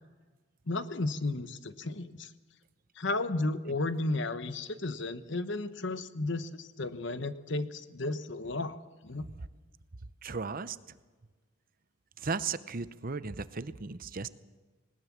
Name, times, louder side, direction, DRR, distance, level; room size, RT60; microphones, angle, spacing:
voice 1, 0.7-2.3 3.0-8.8 9.0-9.2, left 2 dB, 65° left, 12 dB, 1.1 m, -33 dB
voice 2, 10.2-11.0 12.2-14.3, right 4 dB, 45° right, 14 dB, 0.8 m, -36 dB
20.5 x 19.5 x 7.4 m, 1.3 s
head